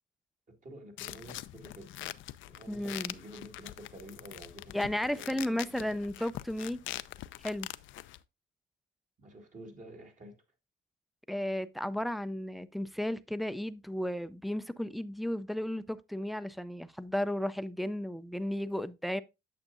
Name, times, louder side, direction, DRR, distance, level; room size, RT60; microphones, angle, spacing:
voice 1, 0.5-2.0 2.5-5.9 9.2-10.4, right 1 dB, 40° right, 2.0 m, -50 dB
sound 1, 1.0-8.2, left 14 dB, 75° left, 0.4 m, -43 dB
voice 2, 2.7-3.2 4.7-6.8 7.4-7.7 11.3-19.2, left 1 dB, ahead, 0.4 m, -34 dB
8.8 x 6.7 x 2.5 m
cardioid pair, 90°, 20 cm